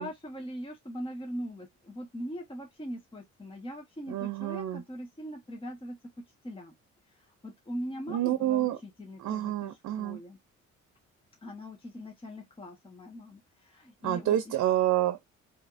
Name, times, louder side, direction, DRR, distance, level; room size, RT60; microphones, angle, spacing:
voice 1, 0.0-6.7 7.1-9.7 10.0-10.4 11.4-14.6, equal, 15° left, 1.3 m, -41 dB
voice 2, 4.1-4.8 8.1-8.8 9.2-10.2 14.0-15.2, right 13 dB, 65° right, 0.7 m, -28 dB
5.0 x 2.9 x 2.6 m
cardioid pair, 90°, 30 cm